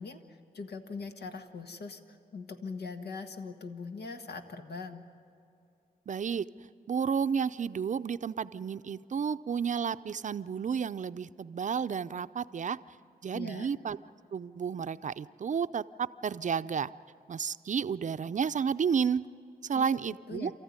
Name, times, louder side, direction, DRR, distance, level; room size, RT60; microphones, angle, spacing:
voice 1, 0.0-5.0 13.3-13.7 19.7-20.0 20.3-20.5, left 4 dB, 80° left, 5 dB, 1.6 m, -41 dB
voice 2, 6.1-6.5 6.9-12.8 13.2-14.0 14.3-16.9 17.3-19.3 19.6-20.5, right 6 dB, 50° right, 13 dB, 0.5 m, -31 dB
28.0 x 14.0 x 9.7 m, 2.5 s
cardioid pair, 70°, 17 cm